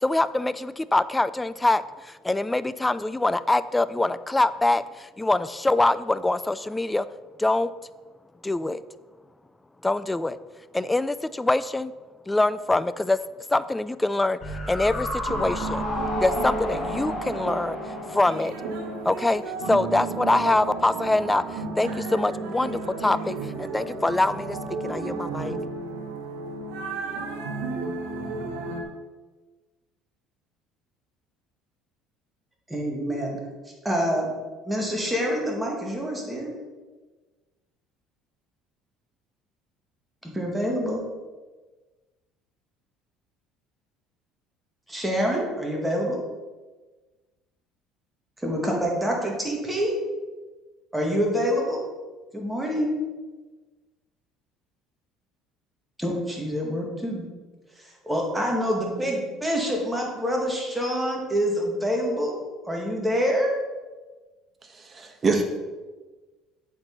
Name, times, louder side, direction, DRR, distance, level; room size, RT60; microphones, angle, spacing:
voice 1, 0.0-7.1 7.4-7.7 8.4-8.8 9.8-10.4 10.7-11.9 12.3-13.2 13.5-14.4 14.7-15.8 16.2-17.8 18.1-18.5 19.1-19.4 19.7-24.6 24.8-25.6, left 2 dB, 10° left, 16 dB, 0.3 m, -24 dB
sound 1, 14.4-19.7 19.9-20.0, left 1 dB, 35° left, 1.8 m, -32 dB
sound 2, 15.3-28.8, right 3 dB, 85° right, 1.1 m, -33 dB
voice 2, 32.7-33.4 33.8-34.3 34.6-36.5 40.2-41.0 44.9-46.2 48.4-50.0 50.9-51.9 52.3-52.9 56.0-57.3 57.8-62.4 62.6-63.5, equal, 5° right, -1 dB, 2.0 m, -26 dB
voice 3, 64.7-65.4, right 3 dB, 30° right, 4 dB, 1.2 m, -25 dB
7.8 x 4.6 x 5.4 m, 1.3 s
cardioid pair, 110°, 0 cm